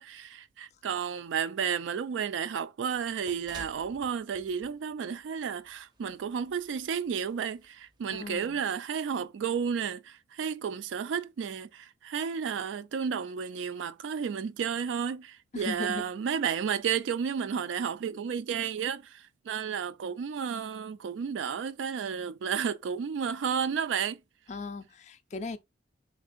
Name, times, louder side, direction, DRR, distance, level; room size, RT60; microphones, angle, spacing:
voice 1, 0.0-24.2, right 7 dB, 85° right, 0.3 m, -32 dB
sound 1, 2.9-8.3, right 2 dB, 25° right, 0.5 m, -54 dB
voice 2, 8.1-8.6 15.5-16.1 24.5-25.6, left 3 dB, 40° left, 0.3 m, -38 dB
3.6 x 3.2 x 2.5 m
head